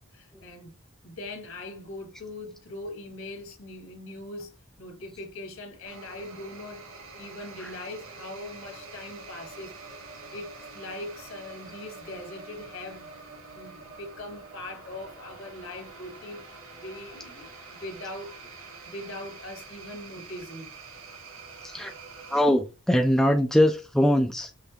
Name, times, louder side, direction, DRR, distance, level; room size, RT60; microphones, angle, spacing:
voice 1, 0.1-0.7 1.0-4.5 4.8-6.8 7.2-9.7 10.1-13.1 13.5-18.5 18.8-20.7 21.7-21.8, left 2 dB, 65° left, 1.6 m, -41 dB
sound 1, 5.8-22.4, right 4 dB, 70° right, 2.4 m, -46 dB
voice 2, 22.3-24.5, left 1 dB, ahead, 0.4 m, -22 dB
5.7 x 3.3 x 2.8 m
head